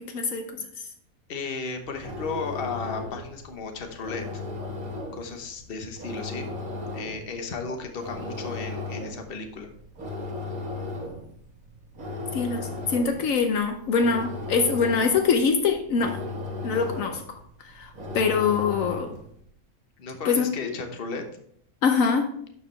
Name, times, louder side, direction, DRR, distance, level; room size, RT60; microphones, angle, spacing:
voice 1, 1.3-4.3 5.1-6.5 6.9-9.7 20.0-21.2, left 4 dB, 45° left, 5 dB, 1.1 m, -34 dB
sound 1, 1.8-19.3, left 2 dB, 80° right, 2.0 m, -36 dB
voice 2, 12.3-16.2 16.6-17.2 17.7-19.1 20.2-20.7 21.8-22.3, left 5 dB, 75° left, 5 dB, 1.1 m, -24 dB
11.5 x 4.8 x 3.2 m, 0.66 s
omnidirectional pair, 1.5 m